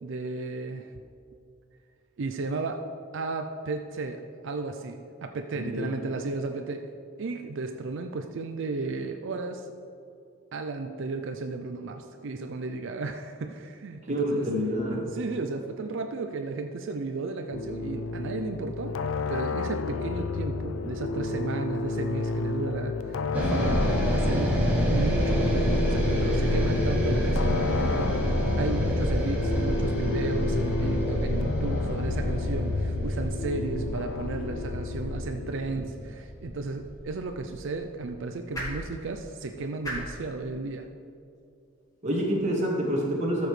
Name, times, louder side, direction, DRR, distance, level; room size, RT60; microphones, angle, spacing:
voice 1, 0.0-0.9 2.2-2.9 3.1-6.9 7.2-9.7 10.5-14.5 14.9-19.0 19.3-23.8 24.1-24.5 24.8-28.1 28.6-40.9, right 3 dB, 60° right, 5 dB, 0.4 m, -34 dB
voice 2, 5.6-5.9 14.0-15.1 42.0-43.5, equal, 35° right, -2 dB, 1.7 m, -27 dB
sound 1, 17.5-35.6, left 3 dB, 70° left, 0.4 m, -31 dB
sound 2, 23.3-37.6, equal, 5° right, 1.6 m, -27 dB
sound 3, 36.7-43.0, equal, 15° left, 1.7 m, -43 dB
13.0 x 7.0 x 3.3 m, 2.5 s
head